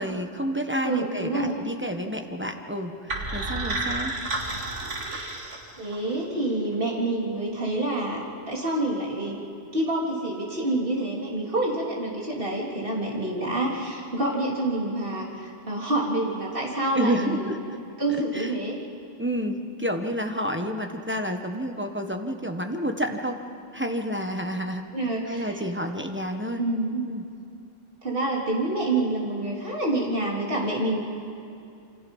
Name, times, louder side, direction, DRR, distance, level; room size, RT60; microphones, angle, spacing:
voice 1, 0.0-4.1 16.9-17.6 18.3-18.6 19.2-23.4 23.7-24.8 25.3-26.6 27.1-27.2, equal, 10° right, 4 dB, 1.3 m, -29 dB
voice 2, 0.8-1.5 5.8-9.4 9.7-17.5 18.0-18.8 24.9-25.6 26.6-27.1 28.0-31.0, right 2 dB, 45° right, -3 dB, 3.7 m, -27 dB
sound 1, 3.1-6.1, right 2 dB, 75° right, 2.6 m, -31 dB
28.0 x 25.5 x 5.6 m, 2.6 s
omnidirectional pair, 1.3 m